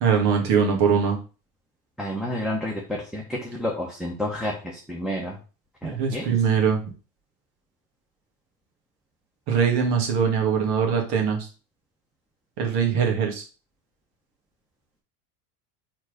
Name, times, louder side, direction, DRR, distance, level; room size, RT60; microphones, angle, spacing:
voice 1, 0.0-1.2 5.8-6.8 9.5-11.4 12.6-13.4, right 6 dB, 55° right, 3 dB, 2.2 m, -22 dB
voice 2, 2.0-2.8 3.1-4.5 4.9-5.3 5.8-6.3, left 1 dB, ahead, -3 dB, 1.2 m, -29 dB
4.5 x 4.3 x 5.1 m, 0.34 s
supercardioid pair, 110°, 47 cm